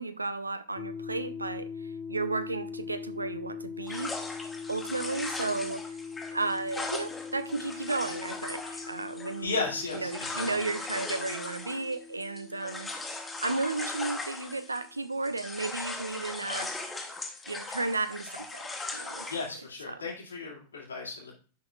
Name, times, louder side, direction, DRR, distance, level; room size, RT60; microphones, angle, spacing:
voice 1, 0.0-4.1 4.7-5.9 6.3-9.6 9.9-12.9 13.4-16.7 17.5-18.7 18.9-19.3 19.9-20.0, right 3 dB, 80° right, 0.6 m, -33 dB
sound 1, 0.8-14.7, left 5 dB, 30° left, 0.7 m, -42 dB
sound 2, 3.9-15.0 15.2-19.5, left 3 dB, 10° left, 1.2 m, -39 dB
voice 2, 9.4-10.5 19.3-21.3, left 4 dB, 75° left, 2.3 m, -35 dB
10.5 x 6.1 x 2.4 m
figure-of-eight pair, 90°, 0 cm